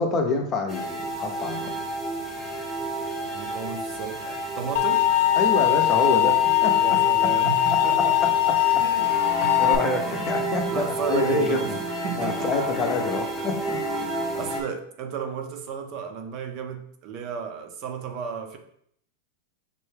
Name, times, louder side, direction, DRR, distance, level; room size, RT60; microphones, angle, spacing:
voice 1, 0.0-1.7 5.4-6.4 6.6-6.8 8.0-8.6 9.6-11.6 12.2-13.8, left 3 dB, 30° left, 3 dB, 0.6 m, -26 dB
sound 1, 0.7-14.6, right 1 dB, 5° right, 0.8 m, -31 dB
voice 2, 3.3-5.0 6.8-8.1 8.8-9.6 10.0-10.2 10.7-11.7 12.0-12.5 13.9-18.6, right 7 dB, 45° right, 6 dB, 0.6 m, -34 dB
sound 2, 4.8-9.8, left 14 dB, 65° left, 0.3 m, -21 dB
5.3 x 2.2 x 3.3 m, 0.68 s
supercardioid pair, 140°, 0 cm